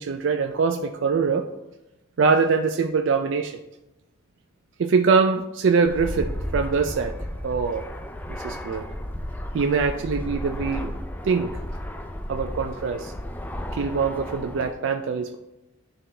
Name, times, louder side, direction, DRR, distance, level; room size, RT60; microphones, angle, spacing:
voice 1, 0.0-1.5 2.2-3.6 4.8-7.1 7.4-7.9 8.3-8.9 9.5-10.9 11.2-11.5 12.3-13.1 13.7-15.4, right 5 dB, 60° right, 5 dB, 0.4 m, -23 dB
Fixed-wing aircraft airplane, 5.9-14.7, left 1 dB, 10° left, 0.4 m, -33 dB
10.5 x 3.8 x 3.3 m, 0.95 s
head